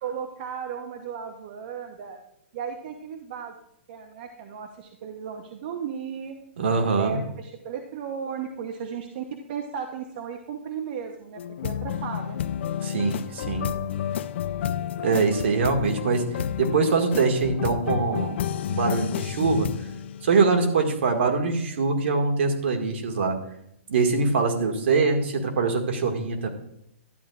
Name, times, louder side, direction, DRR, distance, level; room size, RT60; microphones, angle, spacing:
voice 1, 0.0-2.2 2.5-3.5 3.9-6.4 7.0-12.4, right 7 dB, 45° right, 4 dB, 0.9 m, -35 dB
voice 2, 6.6-7.2 12.8-13.7 15.0-16.2 16.6-18.4 18.7-19.7 20.2-23.4 23.9-26.5, right 4 dB, 65° right, 3 dB, 1.8 m, -23 dB
sound 1, 11.4-21.0, left 9 dB, 60° left, 0.4 m, -30 dB
12.0 x 9.7 x 2.4 m, 0.76 s
hypercardioid pair, 150°, 7 cm